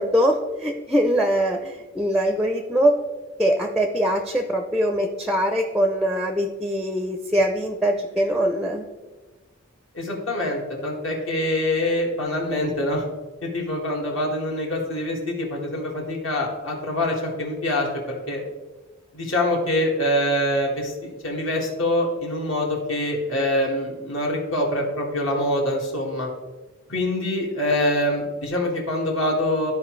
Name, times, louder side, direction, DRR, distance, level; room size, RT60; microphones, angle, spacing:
voice 1, 0.0-3.0 3.4-8.9, equal, ahead, 5 dB, 0.4 m, -22 dB
voice 2, 9.9-13.1 13.4-18.4 19.1-26.3 26.9-29.7, left 1 dB, 65° left, -2 dB, 1.7 m, -25 dB
13.5 x 4.7 x 3.1 m, 1.2 s
head